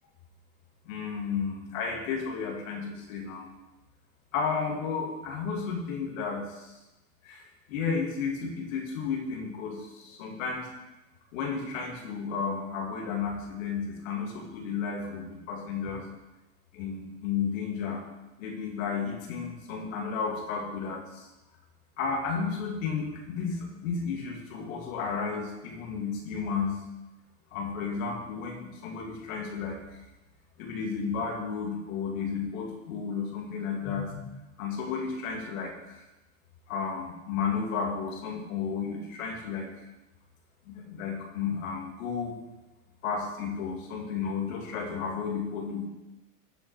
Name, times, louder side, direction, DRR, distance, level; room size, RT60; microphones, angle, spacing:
voice 1, 0.8-3.5 4.3-6.8 7.2-10.7 11.3-16.0 16.7-18.0 18.4-21.3 22.0-26.8 27.5-29.8 30.6-34.3 34.6-36.0 36.7-39.7 40.7-42.4 43.0-45.9, left 5 dB, 80° left, 0 dB, 2.5 m, -33 dB
13.0 x 6.6 x 4.7 m, 1.0 s
hypercardioid pair, 90°, 39 cm